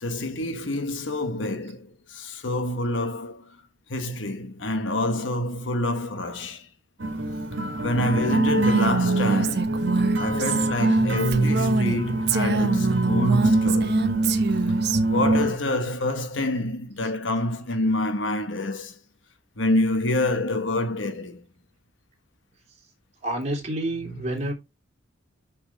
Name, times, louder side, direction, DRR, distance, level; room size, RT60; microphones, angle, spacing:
voice 1, 0.0-3.4 3.9-6.7 7.8-14.0 15.0-19.0 19.6-21.4 23.6-23.7 24.0-24.5, left 1 dB, 75° left, 1.1 m, -27 dB
sound 1, 7.0-15.5, right 2 dB, 80° right, 1.6 m, -24 dB
Female speech woman speaking, 8.5-12.0 12.3-15.0, right 4 dB, 60° right, 0.9 m, -25 dB
voice 2, 23.2-24.5, right 1 dB, 35° right, 2.9 m, -28 dB
6.4 x 6.0 x 3.8 m
head